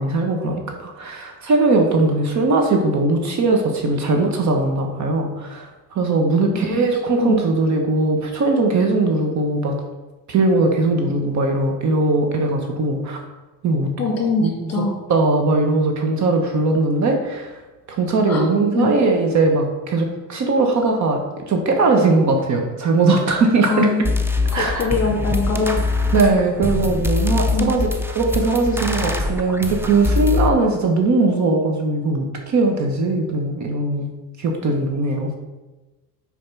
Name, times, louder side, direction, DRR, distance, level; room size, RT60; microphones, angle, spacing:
voice 1, 0.0-9.8 10.3-13.2 13.6-13.9 14.4-14.7 15.1-17.5 17.9-23.9 24.5-24.9 26.1-27.9 28.1-34.1 34.4-35.3, right 3 dB, 45° right, 3 dB, 1.2 m, -19 dB
voice 2, 14.0-15.0 18.3-18.5 18.8-18.9 23.7-24.0 24.5-25.8 27.5-27.7, left 3 dB, 40° left, 0 dB, 2.4 m, -22 dB
sound 1, 23.6-23.7 24.0-30.5, left 3 dB, 5° right, 0.5 m, -23 dB
5.5 x 4.8 x 6.0 m, 1.1 s
cardioid pair, 120°, 38 cm